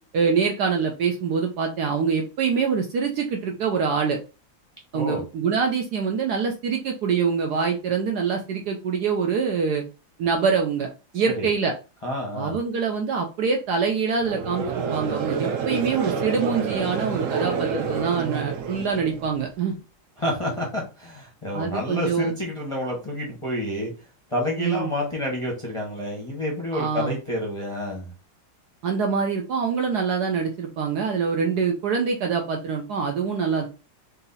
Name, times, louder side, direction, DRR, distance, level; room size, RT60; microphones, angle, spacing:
voice 1, 0.1-4.2 4.9-9.8 10.2-11.7 12.3-19.8 21.5-22.3 24.6-24.9 26.7-27.2 28.8-33.7, right 5 dB, 70° right, 2 dB, 1.0 m, -25 dB
voice 2, 12.0-12.6 20.2-23.9 24.3-28.1, left 1 dB, 25° left, -3 dB, 0.8 m, -29 dB
Conversation / Crowd, 14.2-19.5, right 6 dB, 85° right, 0.7 m, -28 dB
3.9 x 2.8 x 4.0 m, 0.32 s
omnidirectional pair, 2.2 m